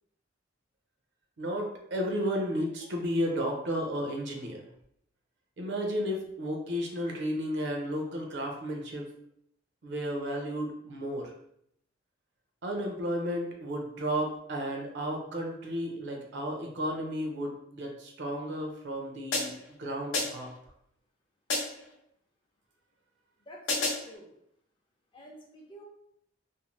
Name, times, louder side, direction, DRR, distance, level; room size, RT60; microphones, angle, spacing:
voice 1, 1.4-4.6 5.6-9.1 9.8-11.3 12.6-20.5, equal, 65° right, 1 dB, 0.6 m, -33 dB
sound 1, 19.3-19.7 20.1-20.6 21.5-21.9 23.7-24.2, left 3 dB, 80° left, 0.8 m, -31 dB
voice 2, 23.5-24.3 25.1-25.8, equal, 25° left, -1 dB, 0.5 m, -49 dB
2.6 x 2.0 x 3.1 m, 0.73 s
head